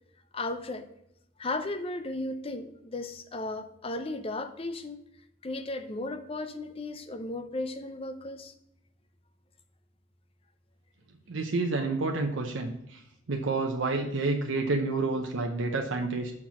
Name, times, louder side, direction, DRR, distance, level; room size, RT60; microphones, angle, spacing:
voice 1, 0.3-0.9 1.4-5.0 5.4-8.5 14.9-15.0, left 2 dB, 30° left, 0.5 m, -35 dB
voice 2, 11.3-13.0 13.3-16.3, right 3 dB, 65° right, 0.7 m, -29 dB
6.0 x 4.3 x 6.1 m
head